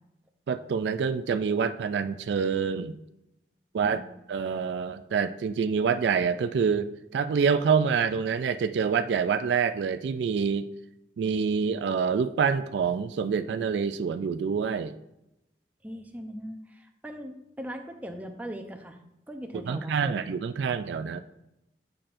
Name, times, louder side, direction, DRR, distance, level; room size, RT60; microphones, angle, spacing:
voice 1, 0.5-3.0 3.7-4.0 4.3-10.7 11.2-14.9 19.7-21.2, right 6 dB, 70° right, 10 dB, 0.3 m, -26 dB
voice 2, 15.8-19.0 19.3-20.3, equal, 10° right, 4 dB, 0.6 m, -40 dB
8.6 x 5.7 x 2.5 m, 0.88 s
head